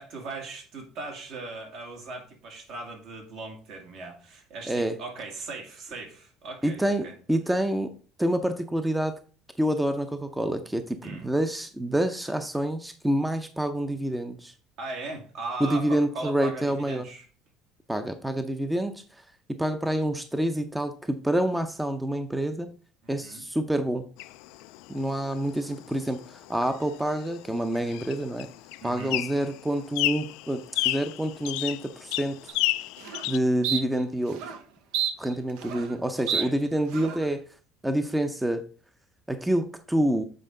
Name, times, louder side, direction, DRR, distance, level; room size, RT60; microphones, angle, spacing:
voice 1, 0.0-7.1 11.0-11.3 14.8-17.2 23.0-23.4 28.8-29.2 36.2-36.6, right 3 dB, 65° right, 2.2 m, -39 dB
voice 2, 4.7-5.0 6.6-7.9 8.2-9.2 9.6-14.5 15.6-17.1 17.9-22.7 23.1-24.1 24.9-28.5 28.8-32.5 33.3-34.4 35.2-37.4 37.8-38.6 39.3-40.2, right 1 dB, 5° right, 0.6 m, -27 dB
sound 1, 24.2-33.4, left 18 dB, 85° left, 0.3 m, -33 dB
sound 2, 32.5-32.6 33.0-33.3 33.6-33.8 34.3-34.6 34.9-36.0 36.3-36.4 36.9-37.3, right 8 dB, 80° right, 0.8 m, -30 dB
7.7 x 4.5 x 3.8 m
cardioid pair, 125°, 0 cm